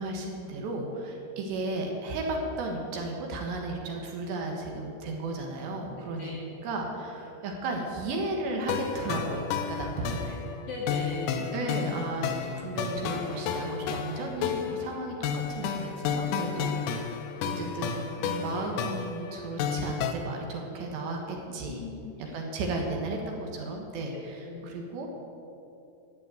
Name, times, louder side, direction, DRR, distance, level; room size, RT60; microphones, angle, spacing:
voice 1, 0.0-6.3 6.6-10.4 11.5-17.2 17.4-21.8 22.3-25.1, right 2 dB, 65° right, 1 dB, 3.3 m, -34 dB
voice 2, 6.0-6.4 10.7-11.5 21.7-22.4 22.7-22.8 24.1-24.7, left 3 dB, 70° left, -3 dB, 2.2 m, -39 dB
sound 1, 8.7-20.1, left 7 dB, 85° left, 3.5 m, -32 dB
12.5 x 8.8 x 9.1 m, 2.8 s
omnidirectional pair, 5.8 m